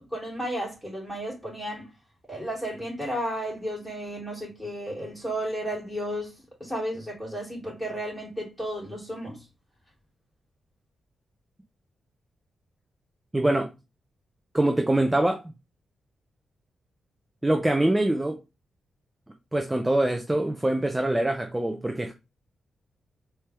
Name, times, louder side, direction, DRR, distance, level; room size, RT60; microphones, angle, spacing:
voice 1, 0.0-1.9 2.3-6.3 6.6-9.4, equal, 5° left, 2.8 m, -33 dB
voice 2, 13.3-13.7 14.5-15.5 17.4-18.4 19.5-22.1, right 1 dB, 10° right, 0.5 m, -24 dB
4.3 x 3.4 x 3.3 m
cardioid pair, 115°, 0 cm